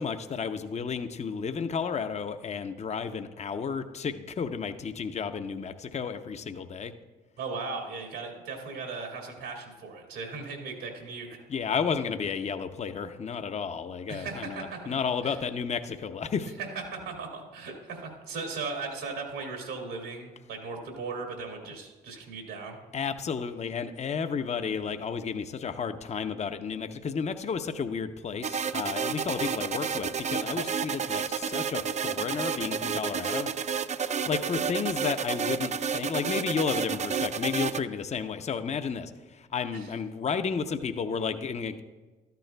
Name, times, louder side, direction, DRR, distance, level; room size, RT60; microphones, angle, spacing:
voice 1, 0.0-6.9 11.5-16.5 22.9-33.5 33.9-41.8, left 6 dB, 30° left, 9 dB, 0.6 m, -32 dB
voice 2, 7.4-11.4 14.1-15.0 15.2-15.4 16.6-22.8 39.7-39.9, right 4 dB, 80° right, 2 dB, 2.0 m, -37 dB
sound 1, 28.4-37.8, right 6 dB, 35° right, 0.4 m, -30 dB
13.0 x 9.2 x 2.2 m, 1.3 s
hypercardioid pair, 50°, 21 cm